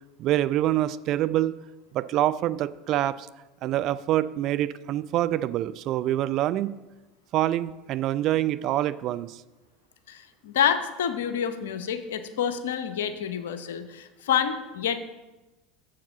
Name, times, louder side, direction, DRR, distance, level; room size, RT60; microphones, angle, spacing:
voice 1, 0.2-1.6 1.9-3.3 3.6-6.7 7.3-9.4, right 13 dB, 50° right, 14 dB, 0.3 m, -26 dB
voice 2, 10.1-15.0, left 8 dB, 75° left, 10 dB, 0.7 m, -28 dB
7.1 x 4.9 x 6.9 m, 1.1 s
hypercardioid pair, 75°, 0 cm